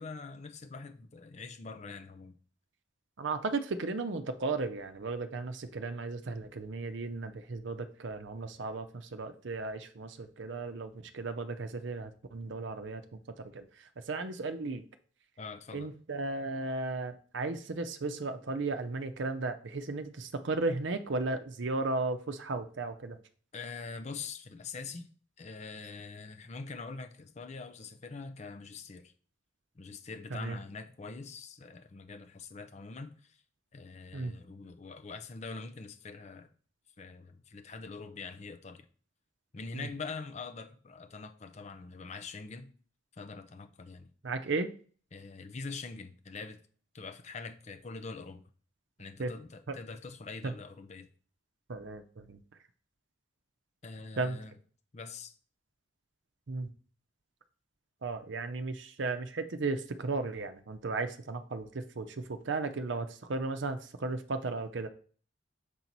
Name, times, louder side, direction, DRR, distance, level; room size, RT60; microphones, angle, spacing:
voice 1, 0.0-2.4 15.4-15.9 23.5-25.1 25.4-29.1 29.8-33.4 33.7-36.5 37.0-38.9 39.5-42.7 43.2-44.1 45.1-46.6 46.9-48.4 49.0-51.1 53.8-54.5 54.9-55.3, left 4 dB, 35° left, 0.5 m, -44 dB
voice 2, 3.2-13.2 13.5-14.8 15.7-23.2 30.3-30.6 34.1-34.3 39.7-39.9 44.2-44.7 49.2-49.3 49.7-49.8 50.4-50.5 51.7-52.4 54.2-54.4 56.5-56.7 58.0-64.9, right 3 dB, 65° right, 0.6 m, -35 dB
6.9 x 4.5 x 4.0 m
head